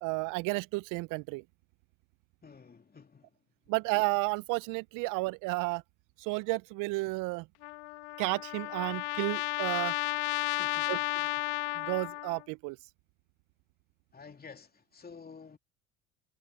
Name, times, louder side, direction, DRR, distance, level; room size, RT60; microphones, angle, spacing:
voice 1, 0.0-1.4 3.7-5.8 6.2-7.5 8.2-9.9 10.9-11.0 11.7-12.8, right 26 dB, 60° right, 0.9 m, -32 dB
voice 2, 2.4-3.4 10.6-11.0 14.1-15.6, left 5 dB, 25° left, 3.0 m, -51 dB
Trumpet, 7.6-12.4, left 26 dB, 70° left, 0.6 m, -33 dB
hypercardioid pair, 65°, 37 cm